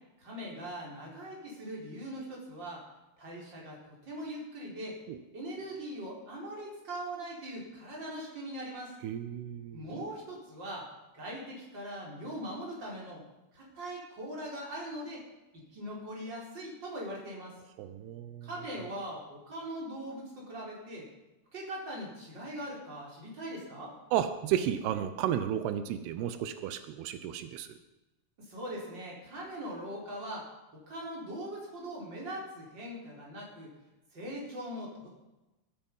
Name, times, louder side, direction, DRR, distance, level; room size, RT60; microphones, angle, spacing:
voice 1, 0.2-2.8 3.2-5.0 5.3-8.9 9.7-10.9 11.1-13.2 13.5-15.2 15.5-17.6 18.4-21.1 21.5-23.9 28.5-30.5 30.9-33.7 34.1-35.2, right 1 dB, 25° right, -3 dB, 4.9 m, -41 dB
voice 2, 9.0-9.9 17.8-18.5 24.1-27.7, right 10 dB, 85° right, 10 dB, 3.0 m, -33 dB
21.5 x 11.5 x 5.5 m, 1.0 s
omnidirectional pair, 4.5 m